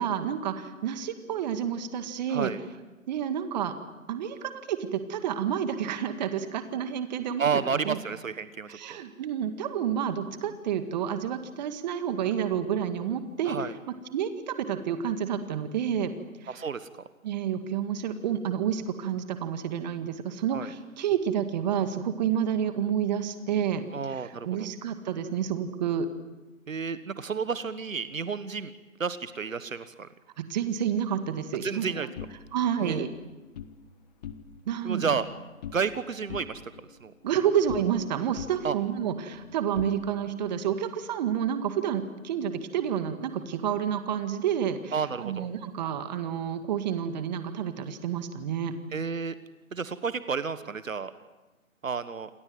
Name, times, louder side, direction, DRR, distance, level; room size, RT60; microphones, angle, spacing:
voice 1, 0.0-2.5 3.1-3.7 4.1-8.0 8.7-13.6 14.1-16.1 16.4-16.6 17.2-26.1 30.4-32.1 32.5-33.1 34.7-35.2 37.2-48.7, right 8 dB, 30° right, 9 dB, 2.0 m, -29 dB
voice 2, 7.4-9.0 13.4-13.7 16.5-16.9 20.5-20.7 23.9-24.7 26.7-28.7 29.0-30.1 31.6-32.1 32.8-33.1 34.8-35.3 35.7-36.6 37.0-37.1 38.6-38.7 44.9-45.5 48.9-49.3 49.7-51.1 51.8-52.3, right 5 dB, 70° right, 13 dB, 1.5 m, -31 dB
sound 1, 32.2-33.8 34.1-34.8 35.0-36.0 36.3-38.1 38.4-40.5, left 8 dB, 30° left, 1.3 m, -44 dB
28.5 x 22.0 x 7.9 m, 1.2 s
figure-of-eight pair, 145°, 41 cm